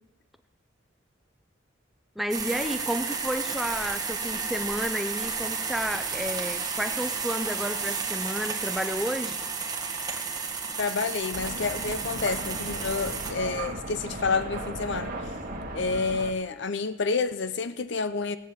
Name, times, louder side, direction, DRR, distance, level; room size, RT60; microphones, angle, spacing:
voice 1, 2.2-9.4, equal, ahead, 9 dB, 0.6 m, -31 dB
sound 1, 2.3-13.3, right 5 dB, 20° right, 1.6 m, -32 dB
voice 2, 10.8-15.3 15.7-18.4, left 4 dB, 60° left, 12 dB, 0.7 m, -29 dB
sound 2, 11.3-16.3, right 1 dB, 40° right, 1.6 m, -36 dB
17.0 x 7.8 x 8.4 m, 1.1 s
head